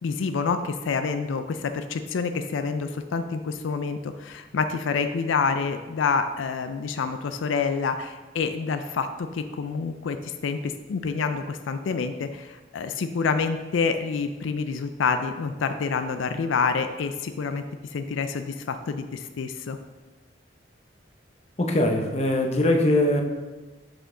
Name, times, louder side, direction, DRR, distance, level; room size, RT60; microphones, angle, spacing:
voice 1, 0.0-19.8, left 5 dB, 85° left, 8 dB, 0.4 m, -27 dB
voice 2, 21.6-23.2, left 1 dB, 35° left, 3 dB, 0.7 m, -21 dB
7.2 x 5.1 x 3.8 m, 1.2 s
head